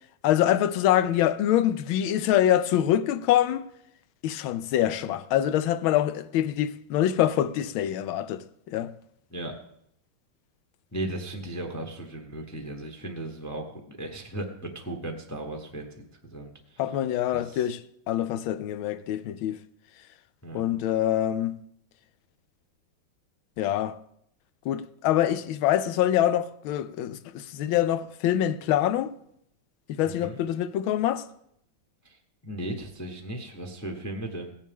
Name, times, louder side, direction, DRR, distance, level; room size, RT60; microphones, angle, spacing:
voice 1, 0.2-3.7 4.2-8.9 16.8-17.8 18.1-19.6 20.5-21.6 23.6-24.0 24.7-29.1 29.9-31.3, left 11 dB, 80° left, 1.4 m, -25 dB
voice 2, 10.9-16.8 17.3-17.7 20.4-20.6 30.0-30.4 32.0-32.2 32.4-34.5, right 1 dB, 20° left, 0.5 m, -36 dB
16.0 x 9.7 x 3.6 m
omnidirectional pair, 2.3 m